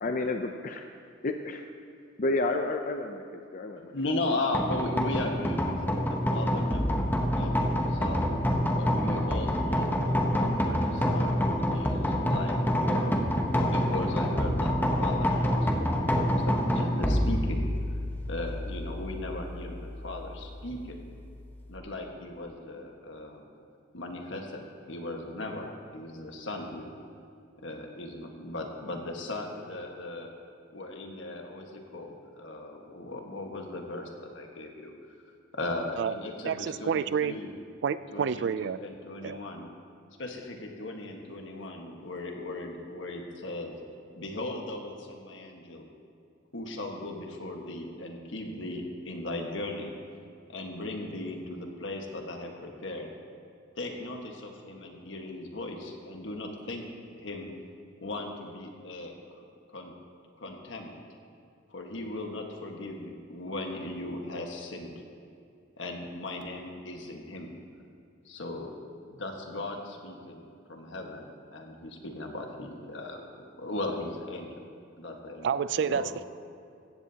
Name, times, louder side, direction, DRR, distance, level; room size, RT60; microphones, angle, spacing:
voice 1, 0.0-0.8 1.2-1.6 2.2-3.9, left 2 dB, 45° left, 5 dB, 0.5 m, -30 dB
voice 2, 3.7-8.2 8.7-12.5 12.8-13.2 13.6-17.6 18.3-21.1 21.7-23.4 23.9-24.6 24.9-26.9 27.6-30.3 30.7-34.9 35.5-37.5 38.1-39.7 40.2-43.8 44.1-45.9 46.5-49.9 50.5-53.1 53.8-56.8 57.1-57.5 58.0-59.9 60.4-61.0 61.7-64.9 65.8-67.5 68.2-68.7 69.1-70.4 70.7-74.6 75.0-76.1, left 2 dB, 70° left, 2 dB, 1.5 m, -37 dB
sound 1, 4.5-21.7, equal, 10° left, 0.9 m, -27 dB
voice 3, 36.4-37.4 37.8-38.8 39.2-39.4 75.4-76.3, right 7 dB, 60° right, 15 dB, 0.3 m, -29 dB
15.5 x 14.5 x 2.8 m, 2.4 s
head